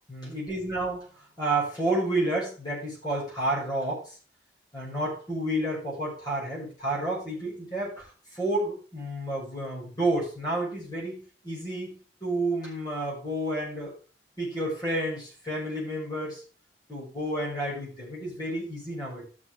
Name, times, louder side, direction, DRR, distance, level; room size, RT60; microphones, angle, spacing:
voice 1, 0.1-1.1 1.4-4.1 4.7-8.1 8.3-11.9 12.2-13.9 14.4-16.4 16.9-19.3, right 1 dB, 25° left, -6 dB, 6.2 m, -30 dB
13.5 x 6.6 x 3.7 m, 0.36 s
head